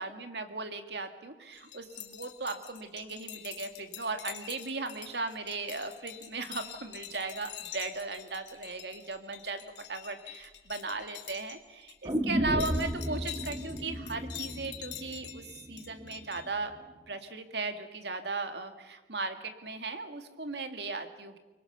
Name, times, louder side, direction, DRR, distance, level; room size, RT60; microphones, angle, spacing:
voice 1, 0.0-9.6 9.9-16.7 17.1-21.4, right 3 dB, 75° right, 6 dB, 2.3 m, -37 dB
sound 1, 1.5-11.6 11.8-12.1 12.5-16.5, left 11 dB, 85° left, 3.1 m, -46 dB
sound 2, 12.0-16.1 16.4-16.5, equal, 25° right, 1.8 m, -34 dB
24.5 x 23.5 x 6.8 m, 1.1 s
head